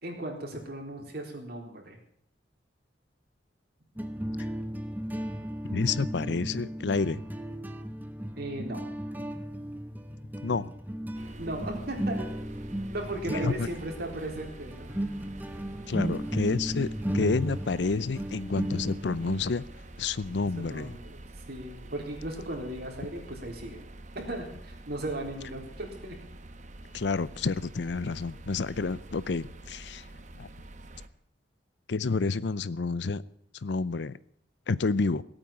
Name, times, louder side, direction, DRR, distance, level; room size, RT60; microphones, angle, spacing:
voice 1, 0.0-2.0 8.4-8.8 10.5-10.6 11.4-12.3 12.9-14.9 20.6-21.2 21.5-23.8 24.1-26.2, right 1 dB, 55° right, 4.0 m, -36 dB
sound 1, 4.0-19.4, equal, 10° right, 1.0 m, -35 dB
voice 2, 5.7-7.2 10.4-10.7 13.3-13.7 15.9-19.6 20.0-21.0 26.9-30.0 30.4-30.5 31.9-33.2 33.6-34.1 34.7-35.2, left 4 dB, 65° left, 0.6 m, -29 dB
sound 2, 11.1-31.1, right 1 dB, 40° right, 1.0 m, -47 dB
17.0 x 9.0 x 8.7 m
head